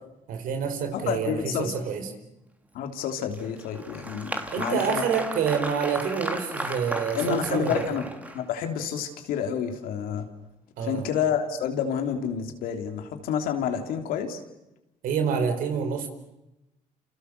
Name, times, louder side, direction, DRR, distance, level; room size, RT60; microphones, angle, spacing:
voice 1, 0.3-2.1 4.5-8.0 10.8-11.1 15.0-16.1, right 6 dB, 75° right, 7 dB, 4.6 m, -27 dB
voice 2, 0.9-1.7 2.7-5.0 7.1-8.1 8.3-10.3 10.8-14.4, left 8 dB, 85° left, 5 dB, 3.3 m, -29 dB
Applause, 3.3-8.6, right 1 dB, 10° right, 2.9 m, -35 dB
28.5 x 28.5 x 6.8 m, 0.95 s
cardioid pair, 75°, 14 cm